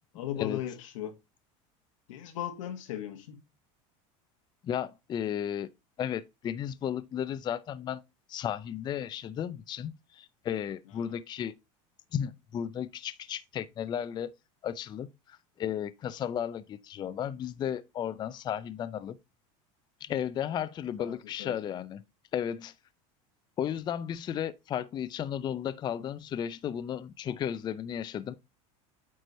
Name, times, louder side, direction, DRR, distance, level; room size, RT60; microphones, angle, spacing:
voice 1, 0.1-1.2 2.1-3.4 11.1-11.2 21.0-21.6, left 11 dB, 90° left, 1.4 m, -37 dB
voice 2, 4.6-5.7 6.0-8.0 8.3-11.5 12.1-14.3 14.6-19.2 20.0-22.0 22.3-22.7 23.6-28.3, left 9 dB, 25° left, 0.4 m, -34 dB
9.0 x 3.2 x 4.0 m
supercardioid pair, 125°, 16 cm